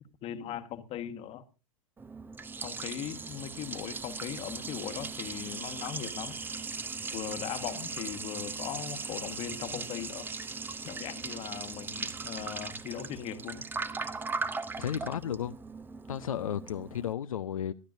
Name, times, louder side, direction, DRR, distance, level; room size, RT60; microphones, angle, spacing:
voice 1, 0.2-1.4 2.6-6.4 7.1-10.3 10.8-13.6, left 10 dB, 35° left, 1.3 m, -39 dB
Liquid, 2.0-17.1, right 4 dB, 10° right, 0.7 m, -39 dB
voice 2, 14.8-15.6 16.1-17.7, left 9 dB, 75° left, 0.6 m, -33 dB
23.0 x 11.5 x 2.6 m
figure-of-eight pair, 100°, 18 cm